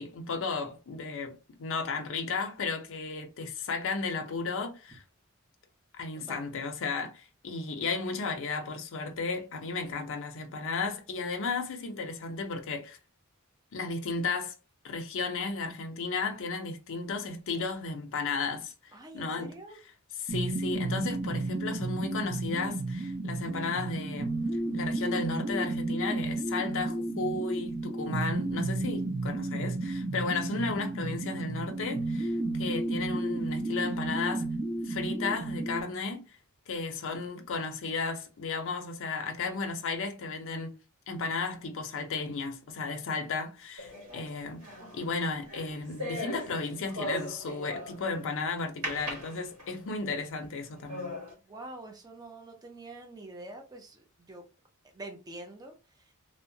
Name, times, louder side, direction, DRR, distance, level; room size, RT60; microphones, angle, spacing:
voice 1, 0.0-5.0 6.0-13.0 13.7-14.5 14.8-19.5 20.2-24.3 24.7-34.5 34.9-36.3 36.7-40.8 41.1-44.6 44.9-51.2, left 4 dB, 60° left, 0.5 m, -34 dB
voice 2, 18.9-19.8 51.5-54.4 54.9-56.1, right 2 dB, 15° right, 0.5 m, -46 dB
sound 1, 20.3-35.8, right 2 dB, 50° right, 0.8 m, -32 dB
sound 2, 43.8-48.2 48.8-49.9 50.4-50.5 50.9-51.3, equal, 80° right, 1.2 m, -39 dB
2.7 x 2.1 x 2.6 m
head